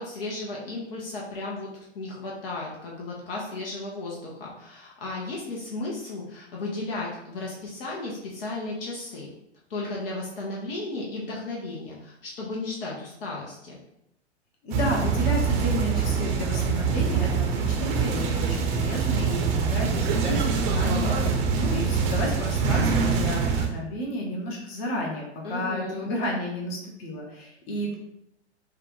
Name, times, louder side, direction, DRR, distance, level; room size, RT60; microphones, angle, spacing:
voice 1, 0.0-1.7 1.9-9.3 9.7-13.8 25.4-26.1, left 2 dB, 55° left, -3 dB, 1.2 m, -34 dB
voice 2, 14.6-27.9, left 1 dB, 35° left, -1 dB, 1.3 m, -31 dB
sound 1, 14.7-23.7, right 5 dB, 30° right, 0.9 m, -24 dB
6.4 x 2.5 x 3.1 m, 0.80 s
figure-of-eight pair, 105°, 35 cm